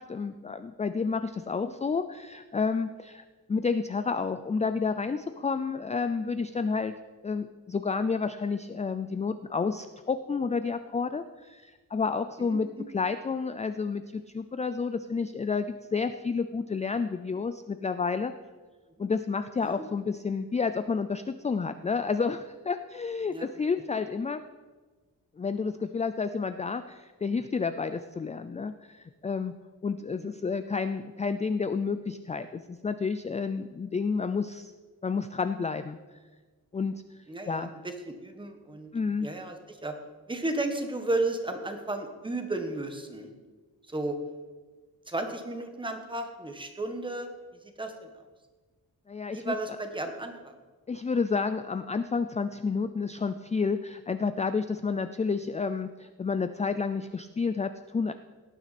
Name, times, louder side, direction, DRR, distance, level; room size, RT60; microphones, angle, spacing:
voice 1, 0.0-6.9 7.2-12.7 12.9-18.3 19.0-24.4 25.4-29.5 29.8-34.7 35.0-36.0 36.7-37.0 37.5-37.7 38.9-39.3 49.1-49.5 50.9-58.1, left 5 dB, 20° left, 10 dB, 0.3 m, -30 dB
voice 2, 12.4-12.9 19.6-19.8 23.3-23.5 23.9-24.0 30.2-30.3 37.3-38.9 39.2-39.9 40.3-43.3 43.9-44.2 45.1-47.3 47.6-48.1 49.3-50.5, right 2 dB, 15° right, 5 dB, 1.3 m, -34 dB
17.5 x 9.1 x 4.2 m, 1.3 s
wide cardioid pair, 165°, 36 cm